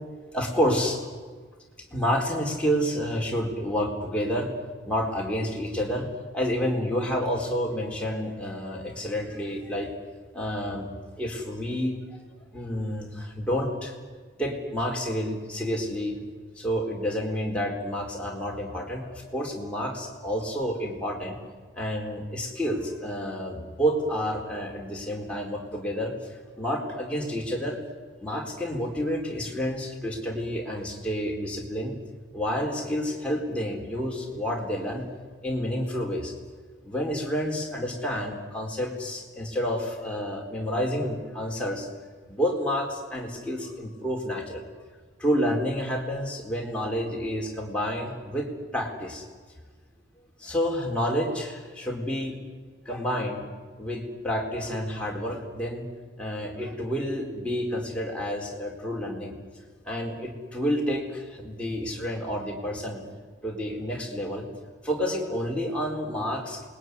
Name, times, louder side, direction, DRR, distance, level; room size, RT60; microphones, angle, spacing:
voice 1, 0.3-1.0 1.9-4.5 4.8-6.1 6.3-9.9 10.3-12.0 12.5-13.9 14.4-16.2 16.6-21.4 21.8-27.8 28.2-31.9 32.3-35.1 35.4-36.3 36.8-41.9 42.3-44.6 45.2-48.5 48.7-49.2 50.4-52.4 52.9-53.4 53.8-55.8 56.2-59.3 59.8-63.0 63.4-64.5 64.8-66.7, equal, 5° left, -1 dB, 4.2 m, -29 dB
28.5 x 21.5 x 9.6 m, 1.5 s
head